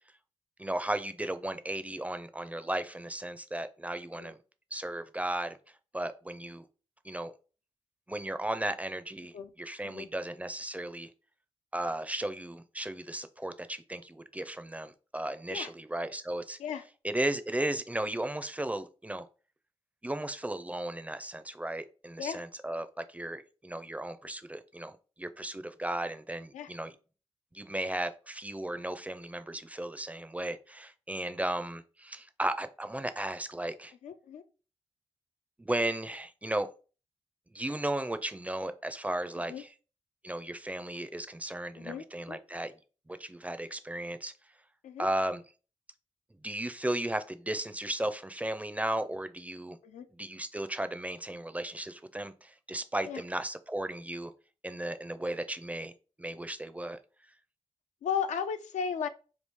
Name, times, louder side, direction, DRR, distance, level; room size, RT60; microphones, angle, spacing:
voice 1, 0.6-4.4 4.7-5.6 5.9-6.7 7.0-7.3 8.1-11.1 11.7-16.6 17.0-19.2 20.0-27.0 27.5-33.9 35.6-36.7 37.5-39.7 40.2-42.7 43.1-44.3 45.0-45.4 46.4-49.8 50.1-54.3 54.6-55.9 56.2-57.0, right 1 dB, 10° right, 0.4 m, -35 dB
voice 2, 34.0-34.4 39.5-39.6 41.8-42.4 44.8-45.1 49.8-50.1 53.0-53.2 58.0-59.1, left 7 dB, 85° left, 0.4 m, -35 dB
3.1 x 2.4 x 3.5 m
cardioid pair, 60°, 12 cm